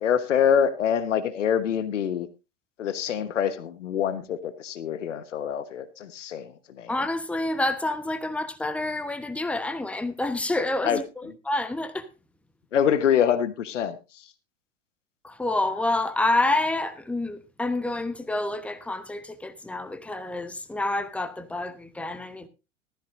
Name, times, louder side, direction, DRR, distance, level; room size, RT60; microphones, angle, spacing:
voice 1, 0.0-2.3 2.8-6.9 10.8-11.0 12.7-14.3, left 8 dB, 65° left, 1.2 m, -25 dB
voice 2, 6.9-12.1 15.2-22.5, left 2 dB, 5° left, 1.0 m, -28 dB
15.5 x 13.5 x 2.6 m
figure-of-eight pair, 85°, 39 cm